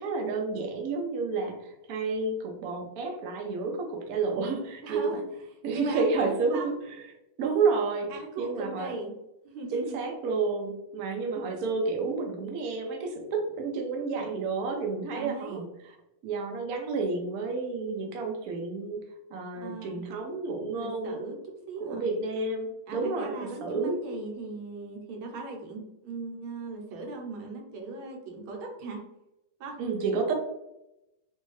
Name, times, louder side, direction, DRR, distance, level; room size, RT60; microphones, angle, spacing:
voice 1, 0.0-5.2 5.6-7.0 7.4-8.9 9.7-15.9 16.2-19.0 19.3-21.2 21.9-24.0 29.8-30.3, right 4 dB, 70° right, 2 dB, 0.8 m, -30 dB
voice 2, 4.8-5.1 5.7-6.7 8.1-9.1 9.4-10.0 15.1-15.6 19.5-20.0 20.7-21.4 21.7-22.0 22.9-29.0 29.6-29.8, right 3 dB, 85° right, 0 dB, 1.6 m, -38 dB
3.2 x 2.7 x 3.1 m, 0.90 s
omnidirectional pair, 2.2 m